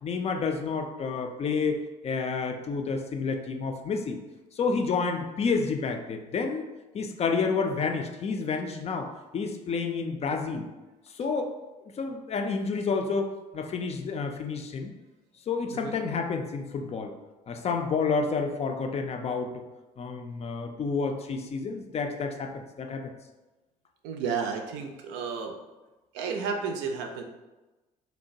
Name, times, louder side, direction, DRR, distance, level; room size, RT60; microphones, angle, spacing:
voice 1, 0.0-4.2 4.5-6.7 6.9-10.7 11.1-11.5 12.0-14.9 15.5-17.1 17.5-19.7 20.0-23.1, left 4 dB, 35° left, 5 dB, 0.4 m, -30 dB
voice 2, 24.0-25.5 26.1-27.2, right 5 dB, 70° right, 3 dB, 0.4 m, -32 dB
2.9 x 2.1 x 2.6 m, 1.1 s
hypercardioid pair, 55°, 19 cm